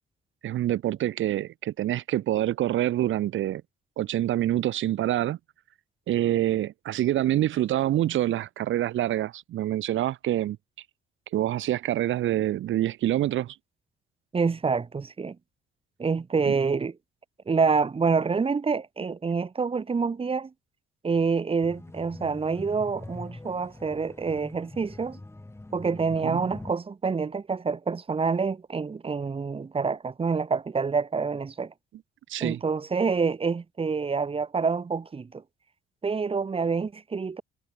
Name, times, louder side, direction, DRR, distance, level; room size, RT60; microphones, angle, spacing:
voice 1, 0.4-3.6 4.0-5.4 6.1-10.6 11.3-13.6 16.5-16.6 26.2-26.4 32.3-32.6, right 13 dB, 75° right, 1.9 m, -26 dB
voice 2, 14.3-15.4 16.0-17.0 17.5-20.5 21.0-25.2 25.7-31.7 32.4-35.4 36.0-37.4, right 5 dB, 30° right, 1.2 m, -27 dB
sound 1, 21.6-26.7, left 2 dB, 15° left, 7.3 m, -43 dB
cardioid pair, 90°, 20 cm